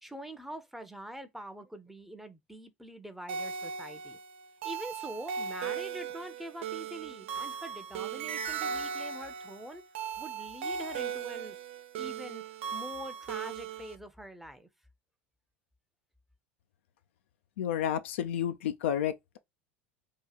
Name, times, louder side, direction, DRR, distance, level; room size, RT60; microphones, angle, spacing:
voice 1, 0.0-4.2 4.6-9.8 10.2-11.6 12.0-12.4 12.7-14.7, right 1 dB, 5° right, 0.7 m, -44 dB
sound 1, 3.3-14.0, right 6 dB, 70° right, 0.4 m, -38 dB
voice 2, 17.6-19.4, left 10 dB, 70° left, 0.4 m, -31 dB
2.9 x 2.3 x 3.9 m
hypercardioid pair, 80°, 7 cm